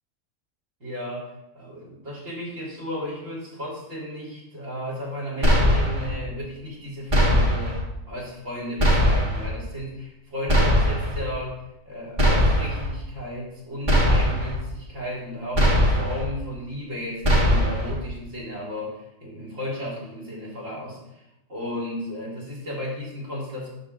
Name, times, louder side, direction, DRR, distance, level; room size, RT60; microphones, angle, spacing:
voice 1, 0.8-1.2 1.5-11.6 11.9-23.7, equal, 80° right, -4 dB, 3.4 m, -34 dB
sound 1, 5.4-6.1 7.1-7.8 8.8-9.5 10.5-11.2 12.2-12.9 13.9-14.6 15.5-16.2 17.2-17.9, equal, 35° right, 2.0 m, -20 dB
12.0 x 4.5 x 3.9 m, 0.89 s
omnidirectional pair, 1.3 m